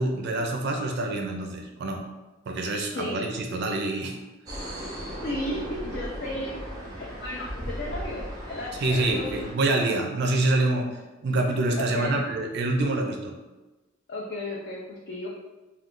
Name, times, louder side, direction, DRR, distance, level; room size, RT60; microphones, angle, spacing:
voice 1, 0.0-2.1 2.5-4.2 8.8-11.0 11.2-13.3, right 2 dB, 55° right, 3 dB, 0.4 m, -26 dB
sound 1, 4.5-9.5, equal, 20° right, 0.7 m, -37 dB
voice 2, 5.2-6.5 7.0-9.5 11.8-12.2 14.1-15.3, left 1 dB, 55° left, -3 dB, 0.4 m, -34 dB
2.4 x 2.2 x 3.6 m, 1.1 s
head